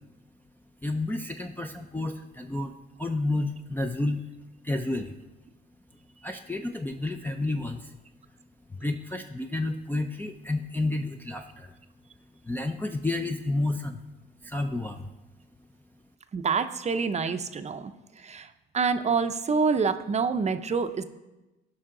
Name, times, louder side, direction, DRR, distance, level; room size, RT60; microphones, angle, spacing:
voice 1, 0.8-4.2 4.6-5.1 6.2-7.9 8.7-11.7 12.4-14.0 14.4-15.1, left 2 dB, 10° left, 5 dB, 0.5 m, -30 dB
voice 2, 16.3-17.9 18.2-21.0, right 5 dB, 35° right, 9 dB, 0.6 m, -27 dB
15.5 x 5.6 x 3.8 m, 1.0 s
cardioid pair, 90°, 20 cm